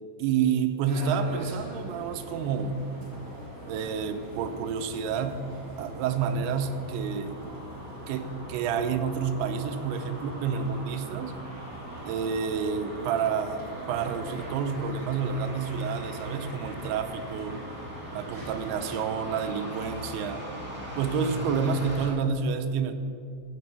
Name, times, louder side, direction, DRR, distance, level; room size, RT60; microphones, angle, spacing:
voice 1, 0.2-2.8 3.7-5.4 5.8-7.4 8.1-11.3 12.0-13.6 13.9-17.6 18.1-20.5 21.0-22.9, right 6 dB, 90° right, 9 dB, 2.7 m, -29 dB
sound 1, 0.8-19.0, right 1 dB, 35° right, 1.8 m, -43 dB
sound 2, 2.2-22.1, equal, 10° right, 0.6 m, -43 dB
15.0 x 5.4 x 5.6 m, 2.5 s
omnidirectional pair, 4.5 m